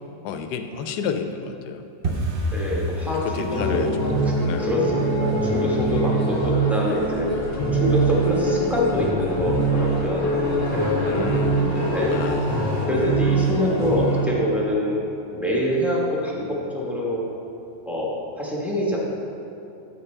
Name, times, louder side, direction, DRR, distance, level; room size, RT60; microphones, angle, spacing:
voice 1, 0.2-2.2 3.2-4.7 11.0-12.9, left 6 dB, 75° left, 7 dB, 1.1 m, -31 dB
sound 1, 2.0-12.8 13.0-13.7 14.0-14.3 14.5-14.9 15.2-15.3 15.8-16.3 16.7-16.8 17.3-17.4, right 1 dB, 50° right, 0.6 m, -35 dB
voice 2, 2.5-3.8 4.2-7.3 7.7-11.3 11.9-12.2 12.9-15.0 15.3-17.3 17.8-19.0, left 1 dB, ahead, -5 dB, 1.0 m, -25 dB
sound 2, 3.5-14.3, right 2 dB, 20° left, 1.7 m, -23 dB
sound 3, 6.7-12.8, left 1 dB, 70° right, 2.1 m, -37 dB
13.0 x 5.4 x 3.3 m, 2.8 s
omnidirectional pair, 1.9 m